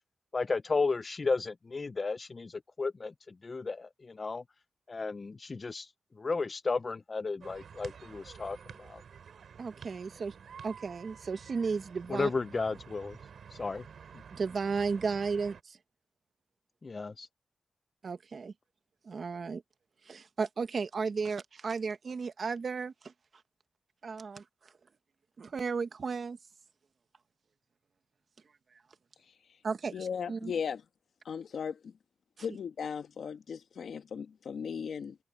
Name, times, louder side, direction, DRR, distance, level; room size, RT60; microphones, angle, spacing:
voice 1, 0.3-4.4 4.9-5.9 6.2-9.0 12.1-13.2 13.5-13.8 16.8-17.3, left 4 dB, 35° left, 0.4 m, -33 dB
sound 1, 7.4-15.6, right 7 dB, 80° right, 4.2 m, -50 dB
voice 2, 9.6-10.3 10.6-12.3 14.3-15.8 18.0-18.5 19.0-19.6 20.1-23.1 24.0-24.4 25.4-26.4 29.6-30.5, right 5 dB, 55° right, 1.3 m, -34 dB
voice 3, 29.9-30.8 31.2-31.9 32.4-35.2, left 7 dB, 80° left, 1.5 m, -37 dB
wide cardioid pair, 135°, 0 cm